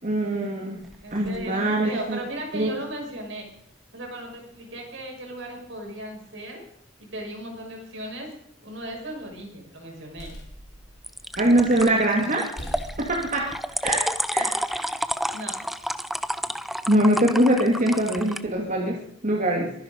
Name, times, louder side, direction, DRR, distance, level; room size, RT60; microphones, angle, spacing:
voice 1, 0.0-0.8 1.1-2.2 2.5-2.7 11.4-12.5 13.0-13.5 13.8-14.0 14.3-14.9 16.9-19.7, right 1 dB, 40° right, 0 dB, 2.3 m, -23 dB
sound 1, 0.8-1.5 11.0-18.4, equal, ahead, 0.6 m, -30 dB
voice 2, 1.0-3.4 3.9-6.6 7.0-8.3 8.6-10.3 14.4-14.5 15.3-15.5, right 1 dB, 70° right, 0 dB, 6.3 m, -36 dB
sound 2, 8.7-9.3 9.8-11.9 12.2-12.3 12.6-14.1, equal, 65° left, 4.4 m, -42 dB
23.0 x 10.5 x 5.3 m, 0.65 s
head